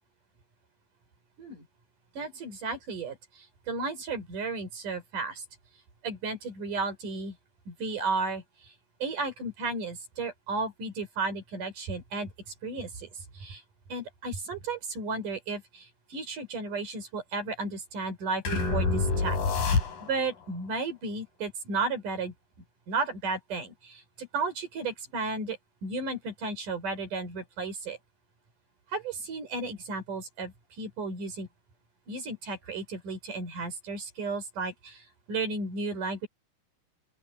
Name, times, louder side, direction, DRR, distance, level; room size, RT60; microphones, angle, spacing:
voice 1, 2.1-5.4 6.0-7.4 7.7-8.7 9.0-13.1 13.3-13.6 13.9-19.4 20.0-22.3 22.9-28.0 28.9-31.5 32.1-36.3, right 3 dB, 65° right, 6.5 m, -34 dB
sound 1, 18.5-20.3, left 4 dB, 75° left, 7.0 m, -27 dB
open air
omnidirectional pair, 4.0 m